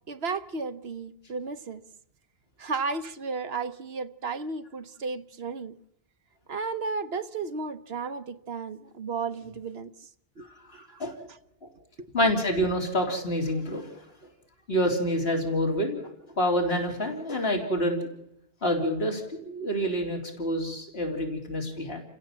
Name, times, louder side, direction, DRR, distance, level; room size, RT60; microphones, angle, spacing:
voice 1, 0.1-1.8 2.6-5.7 6.5-10.1 10.4-11.4 12.0-12.1, right 4 dB, 75° right, 1.3 m, -34 dB
voice 2, 10.7-11.2 11.6-11.7 12.1-13.9 14.7-18.0 18.6-22.0, equal, 75° left, 3.8 m, -27 dB
29.5 x 16.0 x 7.5 m
omnidirectional pair, 1.0 m